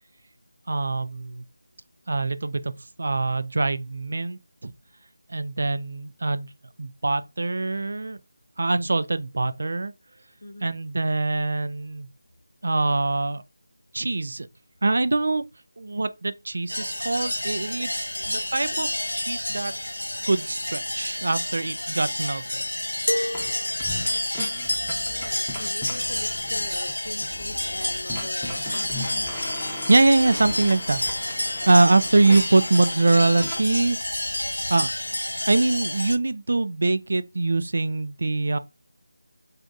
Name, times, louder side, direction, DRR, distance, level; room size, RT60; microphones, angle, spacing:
voice 1, 0.7-1.4 2.1-2.7 3.0-4.7 5.3-6.5 6.8-8.2 8.6-9.9 10.6-12.1 12.6-13.4 13.9-14.5 14.8-15.4 15.8-19.7 20.3-22.6 29.9-31.0 31.7-34.2 34.7-34.9 35.5-38.6, right 3 dB, 60° right, 0.4 m, -23 dB
voice 2, 10.4-10.7 18.2-18.6 25.0-29.2, left 2 dB, 55° left, 0.7 m, -41 dB
sound 1, 16.7-36.2, left 1 dB, 90° left, 0.4 m, -29 dB
sound 2, 23.3-23.5 23.8-33.6, left 1 dB, 5° left, 0.8 m, -38 dB
2.5 x 2.4 x 3.9 m
figure-of-eight pair, 165°, 0 cm